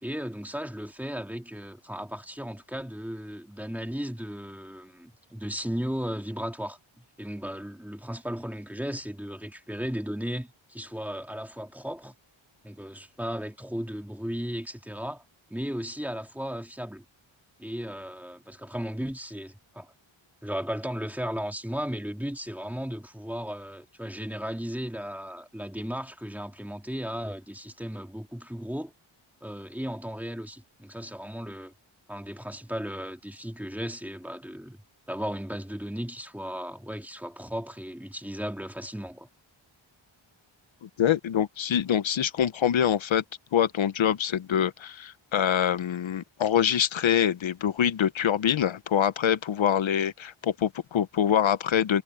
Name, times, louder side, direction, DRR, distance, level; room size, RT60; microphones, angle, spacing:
voice 1, 0.0-12.1 12.6-15.2 15.5-17.0 17.6-19.9 20.4-28.9 29.4-31.7 32.1-34.8 35.1-39.3, equal, 5° right, 2.0 m, -35 dB
voice 2, 40.8-43.2 43.5-52.0, left 9 dB, 70° left, 0.8 m, -25 dB
wide cardioid pair, 175°, 49 cm